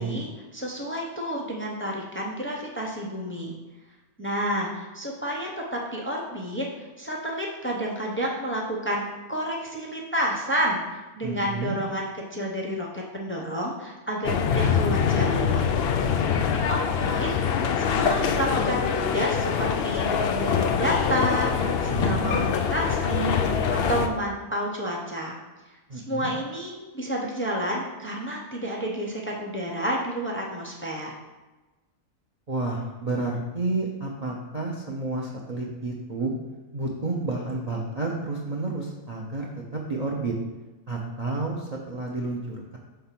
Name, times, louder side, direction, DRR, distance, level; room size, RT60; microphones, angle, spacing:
voice 1, 0.0-3.6 4.2-15.8 16.5-21.5 21.8-23.4 23.7-25.4 25.9-31.1, equal, 15° left, -2 dB, 0.4 m, -30 dB
voice 2, 11.2-11.8 21.9-22.4 25.9-26.3 32.5-36.3 36.7-40.3 40.9-42.8, right 3 dB, 55° right, -1 dB, 0.4 m, -30 dB
sound 1, 14.2-24.1, left 6 dB, 80° left, 0.5 m, -24 dB
5.7 x 3.5 x 5.7 m, 1.2 s
omnidirectional pair, 1.6 m